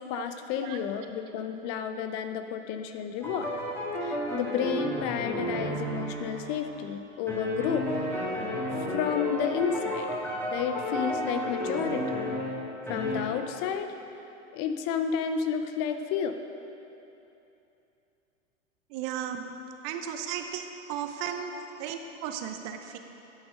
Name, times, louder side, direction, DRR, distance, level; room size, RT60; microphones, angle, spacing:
voice 1, 0.1-3.5 4.0-7.9 8.7-10.1 10.5-12.2 12.9-13.9 14.5-16.4 21.5-21.6, left 8 dB, 40° left, 8 dB, 0.6 m, -31 dB
sound 1, 3.2-6.9 7.3-12.6 12.9-13.2, equal, 5° left, 2.0 m, -32 dB
voice 2, 18.9-19.4 19.8-21.5 21.8-23.0, right 9 dB, 45° right, 6 dB, 0.8 m, -35 dB
10.5 x 6.1 x 5.0 m, 2.9 s
hypercardioid pair, 105°, 38 cm